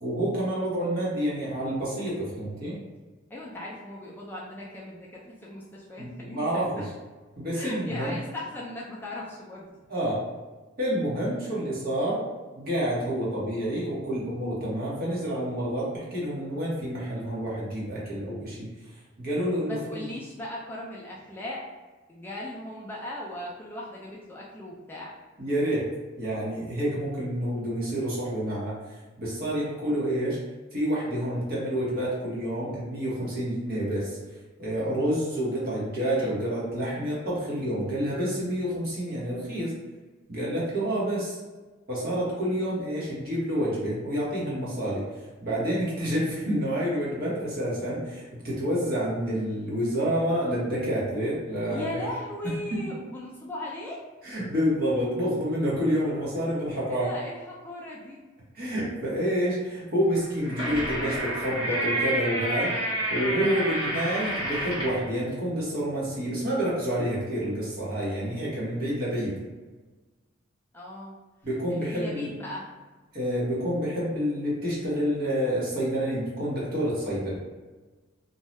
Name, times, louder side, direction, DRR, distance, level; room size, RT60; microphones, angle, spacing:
voice 1, 0.0-2.8 6.0-6.9 7.4-8.1 9.9-10.2 10.8-12.2 12.6-18.7 19.2-20.0 25.4-25.9 26.2-28.7 29.2-30.4 30.7-34.2 34.6-39.7 40.3-41.4 41.9-45.1 45.4-51.9 52.7-52.8 54.2-57.1 58.5-62.7 63.1-69.3 71.4-72.3 73.1-77.4, equal, 50° right, -7 dB, 1.1 m, -28 dB
voice 2, 3.3-6.9 7.5-9.7 19.6-21.6 22.1-25.1 51.7-54.0 56.9-58.2 70.7-71.1 71.7-72.7, left 1 dB, 10° left, -5 dB, 0.3 m, -38 dB
sound 1, 60.2-65.0, right 1 dB, 25° right, 1.2 m, -29 dB
2.7 x 2.3 x 3.1 m, 1.3 s
head